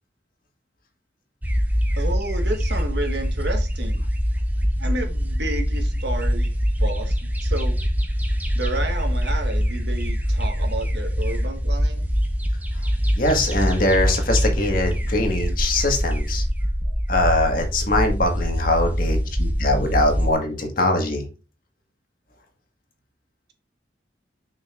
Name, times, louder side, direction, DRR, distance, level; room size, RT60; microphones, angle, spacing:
sound 1, 1.4-20.3, equal, 10° right, 0.9 m, -23 dB
voice 1, 1.9-4.0 4.8-6.5 6.8-7.7 8.5-12.1, right 1 dB, 65° right, 1.6 m, -31 dB
voice 2, 13.2-16.4 17.1-21.2, left 1 dB, 50° left, 1.8 m, -22 dB
6.7 x 6.4 x 2.5 m
head